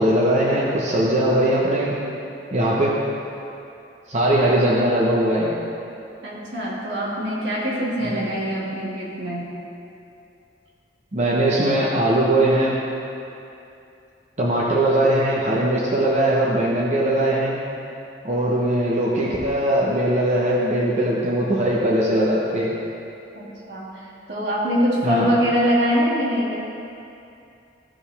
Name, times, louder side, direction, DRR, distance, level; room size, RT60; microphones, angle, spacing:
voice 1, 0.0-1.9 2.5-2.9 4.1-5.5 8.0-8.2 11.1-12.8 14.4-17.6 18.2-22.7 25.0-25.3, right 1 dB, 40° right, -6 dB, 1.0 m, -20 dB
voice 2, 6.2-9.5 11.7-11.8 23.3-26.6, equal, 75° right, -5 dB, 2.0 m, -24 dB
15.5 x 5.3 x 3.5 m, 2.7 s
head